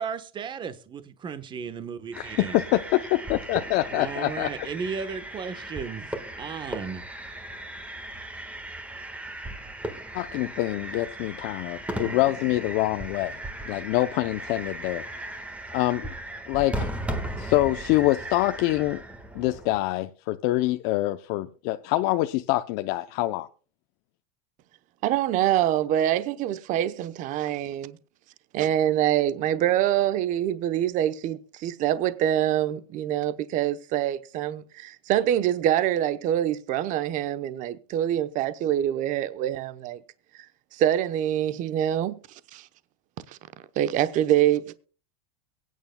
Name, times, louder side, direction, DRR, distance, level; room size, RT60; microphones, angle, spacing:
voice 1, 0.0-2.6 3.9-7.0, right 6 dB, 25° right, 1.1 m, -35 dB
sound 1, 2.1-19.8, right 1 dB, 5° right, 1.5 m, -37 dB
voice 2, 2.2-2.8 3.3-4.5 10.1-13.4 13.7-15.0 15.7-16.1 16.5-16.9 17.4-19.0 19.3-23.5, left 17 dB, 55° left, 0.6 m, -25 dB
voice 3, 25.0-28.0 28.5-40.0 40.7-42.2 42.5-42.7 43.3-43.4 43.8-44.7, right 11 dB, 40° right, 0.9 m, -25 dB
22.5 x 9.3 x 2.2 m
supercardioid pair, 145°, 19 cm